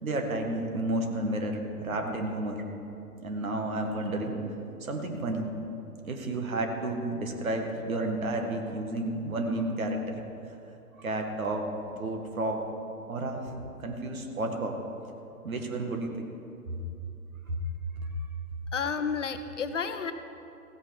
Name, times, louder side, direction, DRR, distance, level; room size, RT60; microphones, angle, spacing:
voice 1, 0.0-2.6 3.2-4.4 4.8-5.5 6.0-10.2 11.0-11.7 11.9-12.6 13.1-13.4 13.8-14.8 15.4-16.3 16.7-16.8 17.5-17.6 18.0-18.1, right 2 dB, 60° right, 3 dB, 1.9 m, -31 dB
voice 2, 18.7-20.1, left 6 dB, 50° left, 9 dB, 0.8 m, -31 dB
16.0 x 8.8 x 5.5 m, 2.7 s
figure-of-eight pair, 125°, 47 cm